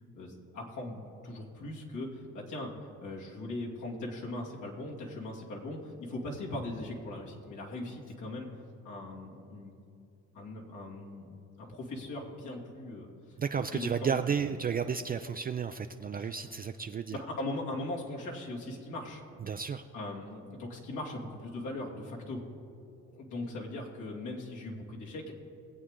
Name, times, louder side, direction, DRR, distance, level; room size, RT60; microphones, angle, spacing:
voice 1, 0.1-2.7 3.0-9.8 10.3-14.5 16.2-16.3 17.4-19.3 19.9-22.5 23.1-25.3, left 2 dB, 75° left, -2 dB, 2.6 m, -40 dB
voice 2, 13.4-17.2 19.4-19.8, right 7 dB, 30° right, 7 dB, 0.4 m, -32 dB
21.0 x 8.2 x 3.7 m, 2.7 s
cardioid pair, 90°, 30 cm